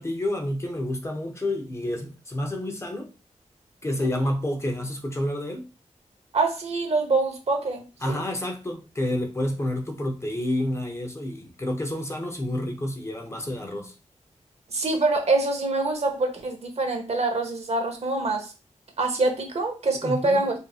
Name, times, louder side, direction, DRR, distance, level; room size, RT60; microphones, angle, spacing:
voice 1, 0.0-3.1 3.8-5.7 8.0-14.0 20.0-20.4, left 1 dB, 20° left, 0.6 m, -29 dB
voice 2, 6.3-8.2 14.7-18.5 19.0-20.5, right 3 dB, 55° right, 0.9 m, -25 dB
5.2 x 2.6 x 2.3 m
wide cardioid pair, 160°, 13 cm